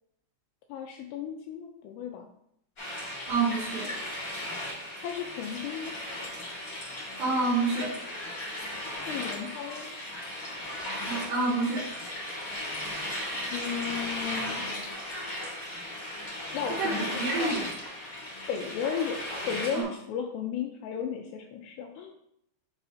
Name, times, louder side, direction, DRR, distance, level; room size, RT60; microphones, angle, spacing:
voice 1, 0.7-2.3 5.0-5.9 9.0-9.9 13.5-14.6 16.5-17.6 18.5-19.2 19.5-22.1, left 7 dB, 85° left, 3 dB, 2.4 m, -34 dB
sound 1, 2.8-19.8, left 1 dB, 65° left, 0.8 m, -36 dB
voice 2, 3.3-3.9 7.2-8.0 11.1-11.9 16.7-17.7 19.7-19.9, right 3 dB, 75° right, -5 dB, 2.2 m, -28 dB
9.6 x 4.0 x 2.7 m, 0.75 s
omnidirectional pair, 5.2 m